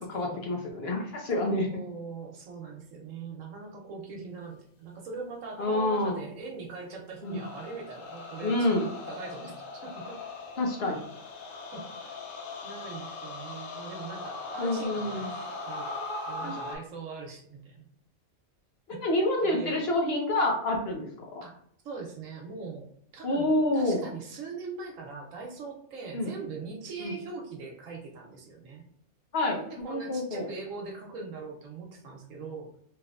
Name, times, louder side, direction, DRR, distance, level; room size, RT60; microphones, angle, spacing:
voice 1, 0.0-1.7 5.6-6.2 7.2-7.5 8.4-8.8 10.6-11.0 14.6-15.3 16.4-16.6 18.9-21.1 23.2-24.0 26.1-26.3 27.0-27.1 29.3-30.5, left 1 dB, 60° left, 1 dB, 0.8 m, -28 dB
voice 2, 1.7-10.2 11.7-12.2 12.6-15.3 15.7-16.0 16.3-17.9 18.9-19.0 19.4-19.8 21.4-21.6 21.8-22.8 23.1-28.8 29.5-32.7, right 4 dB, 85° right, 0 dB, 1.2 m, -41 dB
sound 1, 7.2-16.8, left 3 dB, 80° left, 1.0 m, -39 dB
3.2 x 2.9 x 2.4 m, 0.67 s
omnidirectional pair, 1.3 m